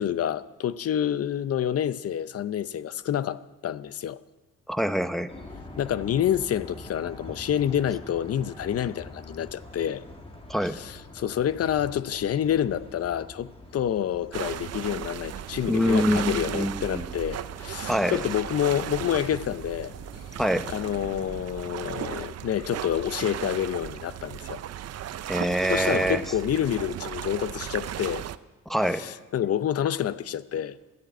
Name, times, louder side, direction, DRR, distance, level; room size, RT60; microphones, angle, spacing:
voice 1, 0.0-4.2 5.8-10.0 10.7-19.9 20.7-24.6 25.7-28.2 28.9-30.8, left 10 dB, 50° left, 0.7 m, -28 dB
voice 2, 4.7-5.3 10.5-10.8 15.7-17.1 17.9-18.2 20.4-20.7 25.3-26.2 28.7-29.0, equal, ahead, 0.9 m, -25 dB
sound 1, 5.3-21.4, left 2 dB, 20° left, 2.2 m, -46 dB
sound 2, 14.3-28.4, right 11 dB, 55° right, 0.6 m, -36 dB
13.5 x 10.5 x 9.1 m
cardioid pair, 90°, 30 cm